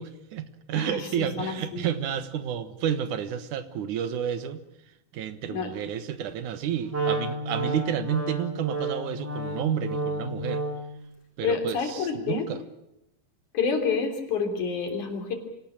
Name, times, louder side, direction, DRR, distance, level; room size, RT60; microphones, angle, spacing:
voice 1, 0.0-4.6 5.1-10.6 11.4-12.6, right 9 dB, 80° right, 12 dB, 2.8 m, -30 dB
voice 2, 0.8-1.9 5.5-5.7 11.4-12.5 13.5-15.3, left 5 dB, 75° left, 4 dB, 4.7 m, -28 dB
Wind instrument woodwind instrument, 6.9-11.0, right 1 dB, 50° right, 7.8 m, -31 dB
25.0 x 18.5 x 8.8 m, 0.84 s
omnidirectional pair, 3.5 m